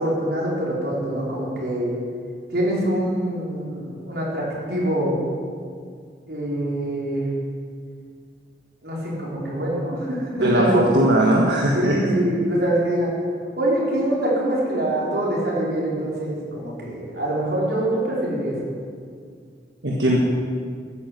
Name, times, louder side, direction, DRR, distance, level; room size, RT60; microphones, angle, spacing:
voice 1, 0.0-1.9 2.5-5.2 6.3-7.2 8.8-11.0 11.7-13.1 13.6-18.5, right 1 dB, 65° right, -5 dB, 4.8 m, -24 dB
voice 2, 10.4-12.0 19.8-20.2, right 1 dB, 85° right, -2 dB, 1.6 m, -19 dB
12.5 x 9.9 x 7.9 m, 2.1 s
head